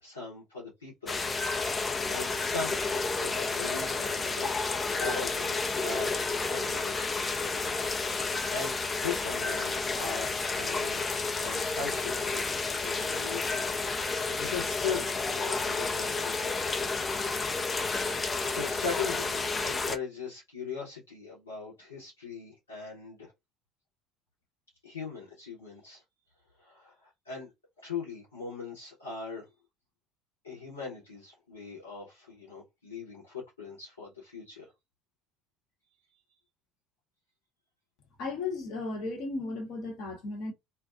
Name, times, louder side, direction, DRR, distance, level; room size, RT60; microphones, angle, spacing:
voice 1, 0.0-1.2 1.7-2.8 3.2-7.2 7.9-12.3 12.8-13.6 14.4-16.5 18.1-23.3 24.8-26.0 26.6-27.5 27.8-29.5 30.4-34.7, left 5 dB, 85° left, 1.0 m, -40 dB
sound 1, 1.1-20.0, left 3 dB, 25° left, 0.4 m, -31 dB
voice 2, 38.2-40.5, left 3 dB, 55° left, 1.0 m, -35 dB
2.4 x 2.2 x 2.4 m
figure-of-eight pair, 60°, 0 cm